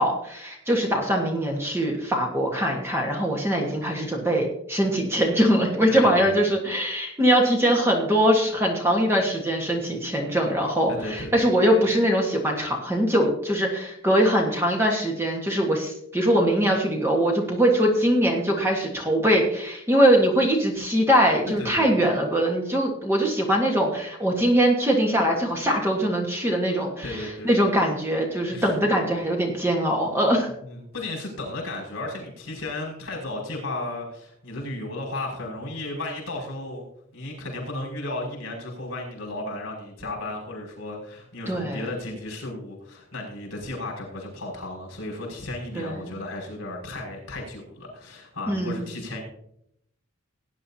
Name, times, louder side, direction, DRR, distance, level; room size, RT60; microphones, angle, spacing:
voice 1, 0.0-30.5 41.5-41.8 45.7-46.1 48.5-48.9, equal, 10° right, 0 dB, 1.5 m, -22 dB
voice 2, 5.9-6.4 11.0-11.3 21.6-21.9 27.0-27.5 28.5-28.7 30.6-36.8 37.1-49.2, left 2 dB, 65° left, -2 dB, 5.4 m, -34 dB
17.5 x 9.8 x 2.8 m, 0.74 s
head